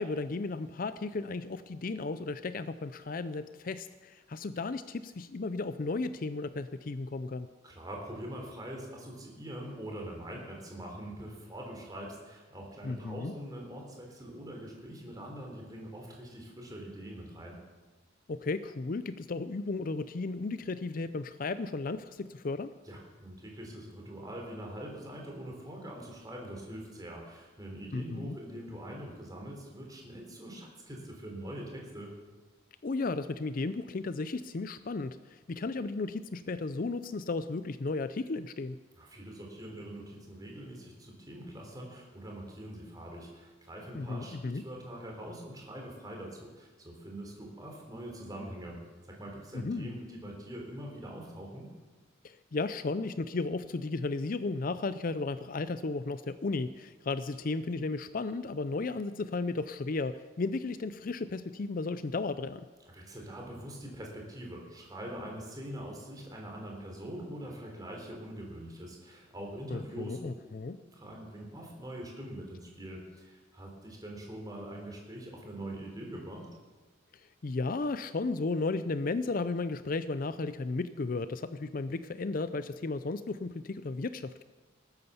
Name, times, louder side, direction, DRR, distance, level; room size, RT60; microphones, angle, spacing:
voice 1, 0.0-7.5 12.8-13.3 18.3-22.7 27.9-28.4 32.8-38.8 43.9-44.6 49.5-50.0 52.2-62.7 69.7-70.8 77.4-84.4, left 3 dB, 45° left, 13 dB, 0.5 m, -34 dB
voice 2, 7.6-17.6 22.9-32.1 39.0-48.8 49.1-51.7 62.9-70.3 70.9-76.5, right 1 dB, 20° right, 0 dB, 3.5 m, -43 dB
19.0 x 9.6 x 7.0 m, 1.3 s
head